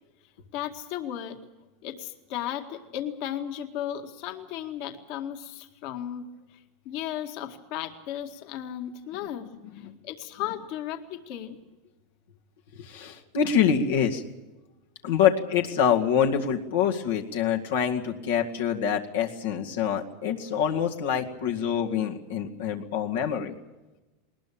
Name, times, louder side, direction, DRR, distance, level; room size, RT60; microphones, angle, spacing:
voice 1, 0.5-1.4 1.8-9.5 9.7-11.6, left 11 dB, 60° left, 5 dB, 2.0 m, -35 dB
voice 2, 12.8-14.2 15.0-23.5, left 8 dB, 90° left, 1 dB, 2.0 m, -25 dB
20.5 x 20.0 x 8.7 m, 1.1 s
supercardioid pair, 125°, 0 cm